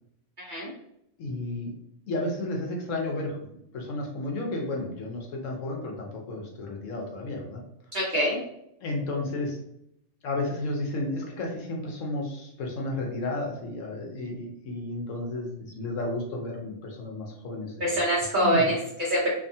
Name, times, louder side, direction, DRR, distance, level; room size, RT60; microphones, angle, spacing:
voice 1, 0.4-0.7 7.9-8.4 17.8-19.3, equal, 45° right, -7 dB, 0.7 m, -25 dB
voice 2, 1.2-1.7 2.1-7.6 8.8-9.6 10.2-18.0 18.4-18.8, left 2 dB, 70° left, 0 dB, 0.9 m, -32 dB
2.6 x 2.3 x 2.6 m, 0.77 s
omnidirectional pair, 1.5 m